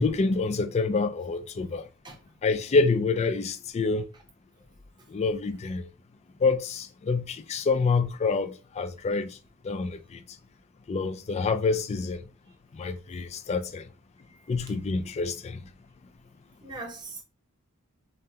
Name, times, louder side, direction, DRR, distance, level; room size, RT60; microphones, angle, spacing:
voice 1, 0.0-1.9 2.4-4.0 5.1-5.9 6.4-9.4 9.6-10.2 10.9-12.2 12.7-13.9 14.5-15.6, left 4 dB, 30° left, 0.3 m, -27 dB
voice 2, 16.6-17.2, right 3 dB, 20° right, 0.7 m, -41 dB
5.1 x 2.1 x 2.8 m
head